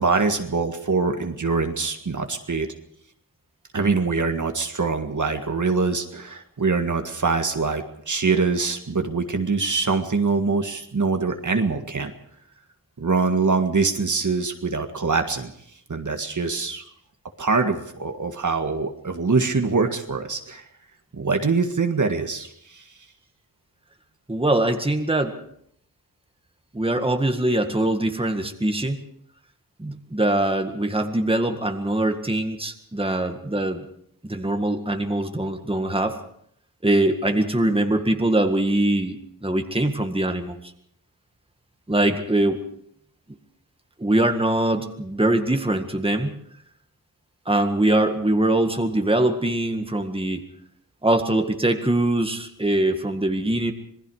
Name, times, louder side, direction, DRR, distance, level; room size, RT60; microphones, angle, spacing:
voice 1, 0.0-2.7 3.7-12.1 13.0-15.5 15.9-16.8 17.4-20.6 21.1-22.8, right 4 dB, 55° right, 5 dB, 1.9 m, -24 dB
voice 2, 24.3-25.4 26.7-29.0 29.8-33.8 34.2-36.2 36.8-40.6 41.9-42.6 44.0-46.4 47.5-50.4 51.0-53.7, right 1 dB, 15° right, 6 dB, 1.9 m, -22 dB
26.5 x 19.5 x 4.9 m, 0.68 s
wide cardioid pair, 90°, 36 cm